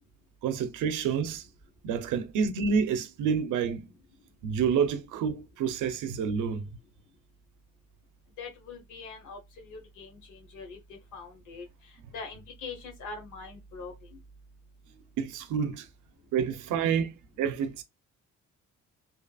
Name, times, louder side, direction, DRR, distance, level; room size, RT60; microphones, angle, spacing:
voice 1, 0.4-1.5 1.8-3.9 4.4-6.7 15.2-15.9 16.3-17.8, right 6 dB, 80° right, 0.6 m, -28 dB
voice 2, 8.4-14.2, left 4 dB, 85° left, 1.0 m, -43 dB
2.8 x 2.4 x 2.3 m
cardioid pair, 90°, 30 cm